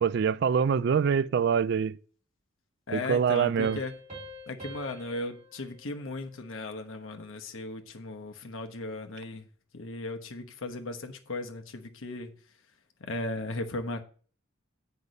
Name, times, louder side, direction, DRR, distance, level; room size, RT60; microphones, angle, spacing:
voice 1, 0.0-2.0 2.9-3.8, right 7 dB, 55° right, 0.3 m, -25 dB
voice 2, 2.9-3.9 4.5-9.5 9.7-12.3 13.0-14.0, left 2 dB, 75° left, 1.1 m, -36 dB
sound 1, 3.6-6.9, equal, 30° right, 3.0 m, -46 dB
8.1 x 5.4 x 5.3 m
head